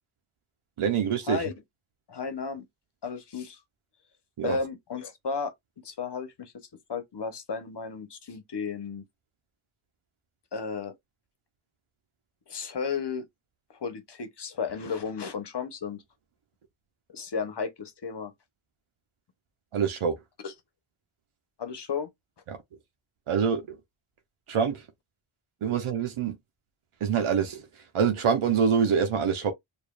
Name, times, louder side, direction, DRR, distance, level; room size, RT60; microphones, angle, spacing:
voice 1, 0.8-1.4 4.4-4.6 19.7-20.2 22.5-22.6 23.3-23.8 24.5-24.8 25.6-26.4 27.0-27.7 27.9-29.5, right 7 dB, 80° right, 0.8 m, -25 dB
voice 2, 2.1-2.6 3.0-3.6 4.4-5.5 5.8-9.0 10.5-10.9 12.5-13.2 13.7-16.0 17.1-18.3 20.4-20.5 21.6-22.1, left 5 dB, 55° left, 1.0 m, -33 dB
4.9 x 2.5 x 2.4 m
cardioid pair, 60°, 49 cm